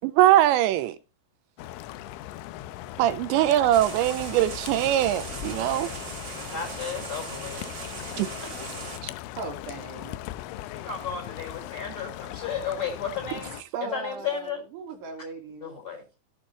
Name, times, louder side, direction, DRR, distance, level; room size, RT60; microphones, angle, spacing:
voice 1, 0.0-1.0 3.0-5.9 8.2-8.3, right 13 dB, 80° right, 2.7 m, -21 dB
sound 1, 1.6-13.6, left 14 dB, 85° left, 3.2 m, -39 dB
sound 2, 3.7-9.0, right 4 dB, 35° right, 3.0 m, -39 dB
voice 2, 5.6-6.0 6.3-7.6 10.7-14.6 15.6-16.2, left 6 dB, 20° left, 4.1 m, -34 dB
voice 3, 9.4-10.2 13.7-15.7, right 4 dB, 60° right, 4.2 m, -38 dB
18.0 x 6.9 x 3.0 m
omnidirectional pair, 5.6 m